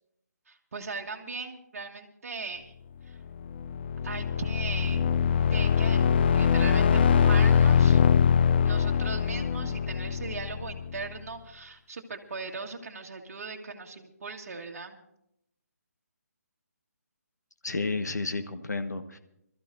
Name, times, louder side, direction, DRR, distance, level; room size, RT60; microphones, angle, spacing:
voice 1, 0.5-2.7 3.1-3.2 4.0-5.1 5.5-6.1 6.3-8.0 8.6-15.0, right 4 dB, 55° right, 1 dB, 1.6 m, -39 dB
sound 1, 3.3-11.1, left 7 dB, 35° left, 0.4 m, -23 dB
voice 2, 17.6-19.2, left 3 dB, 80° left, 8 dB, 1.3 m, -31 dB
26.0 x 13.5 x 2.6 m, 0.79 s
figure-of-eight pair, 150°, 9 cm